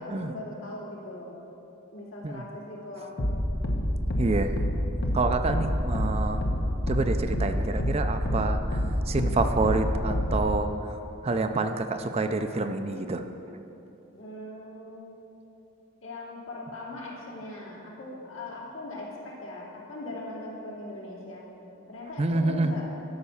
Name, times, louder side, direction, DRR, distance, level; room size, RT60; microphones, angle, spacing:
voice 1, 0.0-1.3 1.9-3.4 14.2-15.0 16.0-21.5 21.9-22.9, left 2 dB, 75° left, -4 dB, 2.6 m, -40 dB
sound 1, 3.2-10.6, equal, 55° left, 1.1 m, -27 dB
voice 2, 4.2-4.5 5.1-6.4 6.9-8.8 9.1-10.7 11.2-13.2 22.2-22.7, right 3 dB, 30° right, 7 dB, 0.4 m, -27 dB
13.0 x 5.3 x 7.0 m, 3.0 s
head